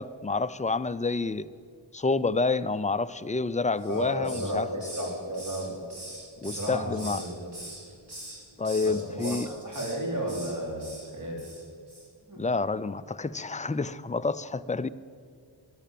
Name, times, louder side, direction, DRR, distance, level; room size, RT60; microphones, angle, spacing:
voice 1, 0.0-1.5 1.9-4.7 6.4-7.2 8.6-9.5 12.4-14.9, left 3 dB, 20° left, 0.4 m, -28 dB
Hiss, 3.8-4.6 4.8-7.3 7.5-8.4 8.6-8.9 9.2-10.0 10.3-10.5 10.8-11.0 11.4-11.6 11.9-12.0, right 1 dB, 55° right, 4.1 m, -42 dB
voice 2, 3.9-5.8 6.4-7.5 8.8-11.4 12.3-12.4, equal, 40° right, 4.2 m, -33 dB
13.5 x 10.5 x 7.6 m
wide cardioid pair, 55°, 46 cm